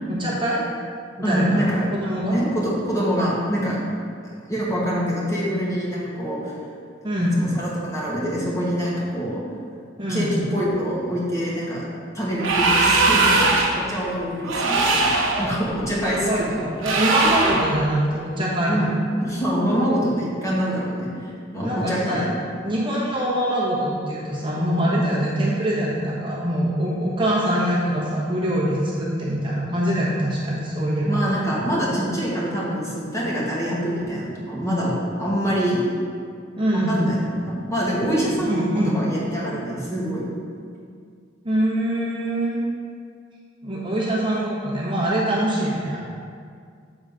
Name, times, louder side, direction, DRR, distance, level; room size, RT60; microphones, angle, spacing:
voice 1, 0.2-0.6 1.2-1.6 1.9-2.4 7.0-7.3 10.0-10.3 16.0-18.9 21.6-22.2 22.6-31.2 36.6-37.1 38.1-38.9 41.4-42.6 43.6-46.0, right 1 dB, 25° right, -6 dB, 1.2 m, -24 dB
voice 2, 1.2-1.8 2.3-3.8 4.5-6.5 7.2-9.4 10.1-11.8 12.1-16.6 18.7-18.9 19.2-22.3 31.0-34.9 35.2-35.8 36.7-38.7 38.9-40.3, equal, 15° left, -6 dB, 1.5 m, -25 dB
sound 1, 12.4-13.8 14.4-15.5 16.8-17.7, right 3 dB, 80° right, 1.1 m, -19 dB
7.4 x 4.0 x 5.1 m, 2.2 s
head